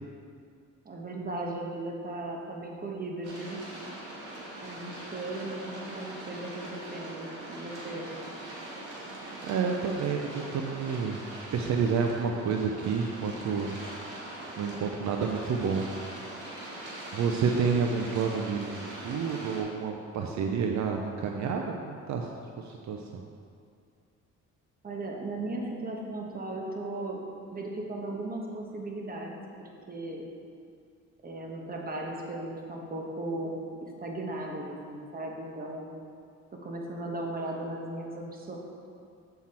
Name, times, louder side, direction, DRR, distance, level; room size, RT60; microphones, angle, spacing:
voice 1, 0.8-3.6 4.6-8.1 24.8-27.2 27.5-29.3 29.6-30.2 31.2-35.9 36.5-38.6, right 2 dB, 30° right, 0 dB, 1.3 m, -37 dB
sound 1, 3.2-19.6, right 1 dB, 85° right, 2.0 m, -42 dB
voice 2, 9.4-11.3 11.5-13.8 14.6-15.9 17.1-22.3 22.6-23.2, right 5 dB, 65° right, 2 dB, 0.6 m, -29 dB
7.4 x 5.7 x 4.3 m, 2.3 s
cardioid pair, 90°, 30 cm